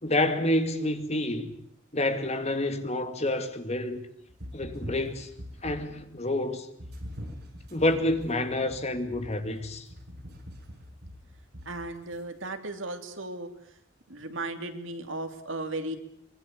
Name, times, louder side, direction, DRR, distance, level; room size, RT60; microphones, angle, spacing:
voice 1, 0.0-1.5 1.9-4.0 4.5-5.3 5.6-6.7 7.7-9.9, left 1 dB, 35° left, 2.2 m, -28 dB
sound 1, 4.3-6.1 6.8-12.2, equal, 55° right, 6.4 m, -43 dB
voice 2, 11.6-13.5 14.1-16.0, right 2 dB, 80° right, 3.0 m, -35 dB
24.5 x 23.0 x 8.4 m
head